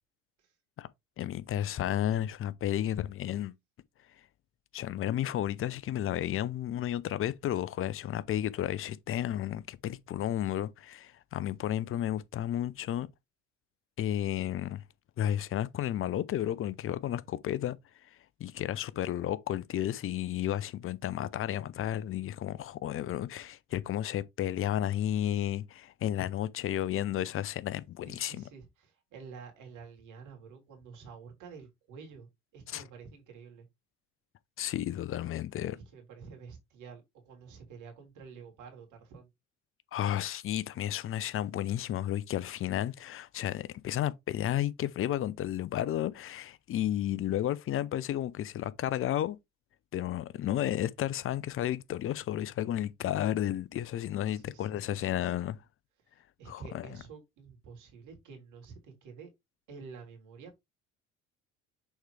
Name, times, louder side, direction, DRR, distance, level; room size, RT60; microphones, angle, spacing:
voice 1, 1.2-3.5 4.7-13.1 14.0-14.8 15.2-17.8 18.4-28.4 32.7-32.8 34.6-35.8 39.9-49.4 49.9-55.6 56.5-56.9, left 12 dB, 35° left, 0.7 m, -32 dB
voice 2, 28.0-33.7 35.7-39.3 54.3-55.3 56.0-59.3 59.7-60.6, right 5 dB, 55° right, 3.3 m, -50 dB
6.4 x 4.7 x 3.2 m
figure-of-eight pair, 60°, 37 cm